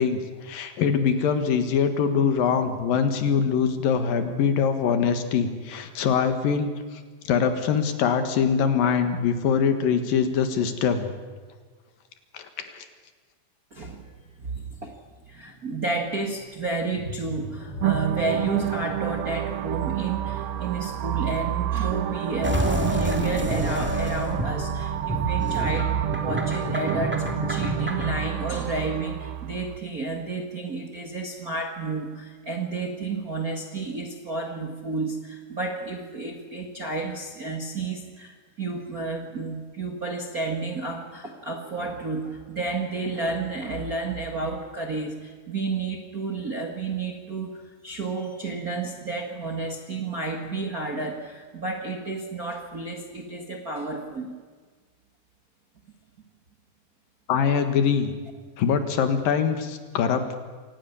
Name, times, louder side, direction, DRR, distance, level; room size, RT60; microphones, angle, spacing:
voice 1, 0.0-6.7 7.2-11.1 12.3-12.8 57.3-58.1 58.6-60.3, left 6 dB, 75° left, 8 dB, 3.2 m, -23 dB
voice 2, 13.7-14.1 14.4-15.0 15.3-54.3, right 3 dB, 40° right, 3 dB, 1.4 m, -31 dB
sound 1, 16.9-22.3 22.8-22.9 23.4-23.5, left 1 dB, 30° left, 3.0 m, -39 dB
sound 2, 17.8-29.8, right 12 dB, 80° right, 2.7 m, -29 dB
sound 3, 22.4-28.2, right 1 dB, 5° right, 1.6 m, -28 dB
26.0 x 18.5 x 7.1 m, 1.5 s
omnidirectional pair, 4.2 m